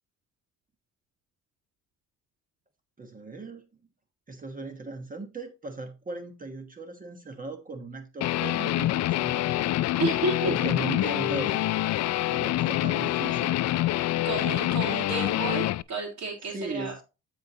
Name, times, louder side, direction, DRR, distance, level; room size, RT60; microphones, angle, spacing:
voice 1, 3.0-3.6 4.3-9.5 10.4-11.7 12.3-13.5 16.5-17.0, right 3 dB, 25° right, 1.2 m, -38 dB
Guitar, 8.2-15.8, left 15 dB, 60° left, 0.4 m, -26 dB
voice 2, 10.0-10.7 14.2-17.0, right 3 dB, 60° right, 3.0 m, -31 dB
12.0 x 4.5 x 2.8 m
cardioid pair, 90°, 30 cm